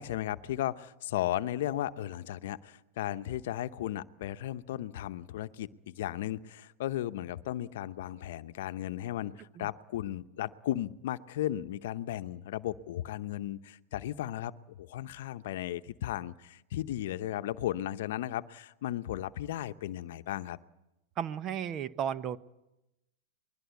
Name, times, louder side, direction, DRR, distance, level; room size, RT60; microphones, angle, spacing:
voice 1, 0.0-20.6, left 13 dB, 65° left, 12 dB, 0.8 m, -35 dB
voice 2, 21.2-22.4, right 9 dB, 35° right, 15 dB, 1.0 m, -34 dB
22.0 x 21.5 x 8.3 m, 0.91 s
hypercardioid pair, 110°, 0 cm